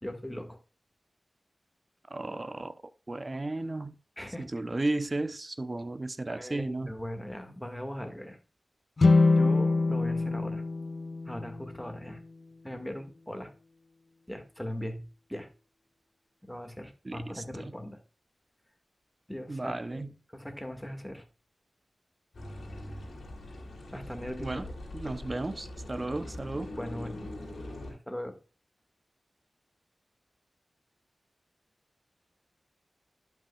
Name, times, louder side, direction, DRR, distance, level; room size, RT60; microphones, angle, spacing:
voice 1, 0.0-0.6 4.2-4.4 6.3-8.4 9.4-10.6 11.3-12.2 12.6-13.5 14.3-15.5 16.4-18.0 19.3-21.3 23.9-24.6 25.0-25.2 26.1-26.3 26.8-27.3 27.9-28.4, equal, 5° left, 1.9 m, -39 dB
voice 2, 2.1-2.8 3.1-4.0 4.4-6.9 17.0-17.7 19.5-20.1 24.4-24.7 24.9-26.7, right 2 dB, 40° right, 0.7 m, -34 dB
sound 1, 9.0-12.2, left 3 dB, 60° left, 0.7 m, -25 dB
sound 2, 22.3-27.9, left 1 dB, 90° left, 2.6 m, -42 dB
11.5 x 5.8 x 2.4 m
cardioid pair, 45°, 0 cm